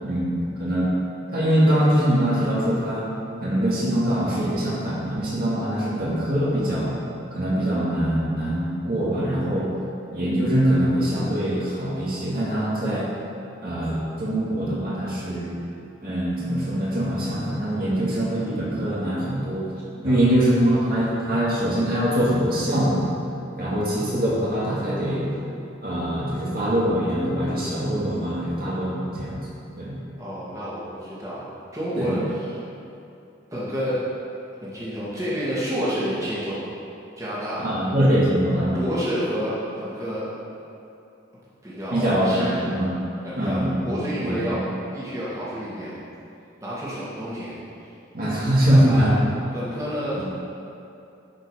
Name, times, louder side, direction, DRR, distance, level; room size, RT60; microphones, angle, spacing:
voice 1, 0.0-0.9 1.3-3.1 3.4-7.0 7.3-9.7 10.1-13.1 13.6-15.5 16.0-19.6 20.0-23.0 23.6-25.3 25.8-29.4 29.8-29.9 32.0-32.2 37.6-38.8 41.9-42.9 43.4-44.6 48.1-49.2 50.2-50.3, equal, 50° right, -7 dB, 2.1 m, -23 dB
voice 2, 20.0-20.3 20.9-21.1 30.2-31.5 31.7-32.6 33.5-34.0 34.6-36.6 37.2-37.6 38.6-40.4 41.6-42.7 43.2-44.7 44.9-46.0 46.6-47.6 48.6-49.1 49.5-50.2, equal, 15° right, -9 dB, 2.1 m, -29 dB
11.5 x 5.4 x 5.0 m, 2.7 s
head